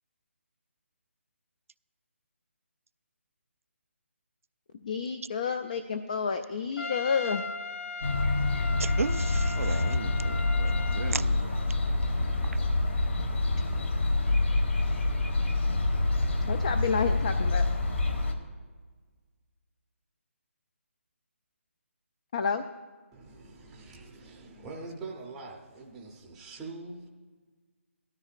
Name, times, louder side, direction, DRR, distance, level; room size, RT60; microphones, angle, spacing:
voice 1, 4.8-7.4 16.5-17.6 22.3-22.6, left 6 dB, 35° left, 9 dB, 0.4 m, -30 dB
Trumpet, 6.8-11.2, left 3 dB, 80° left, 0.7 m, -38 dB
sound 1, 8.0-18.3, left 2 dB, 60° left, 1.6 m, -27 dB
voice 2, 8.8-11.6, right 5 dB, 80° right, 16 dB, 0.4 m, -35 dB
voice 3, 23.1-27.1, right 3 dB, 5° right, -1 dB, 0.7 m, -44 dB
17.5 x 13.0 x 2.5 m, 1.5 s
hypercardioid pair, 170°, 7 cm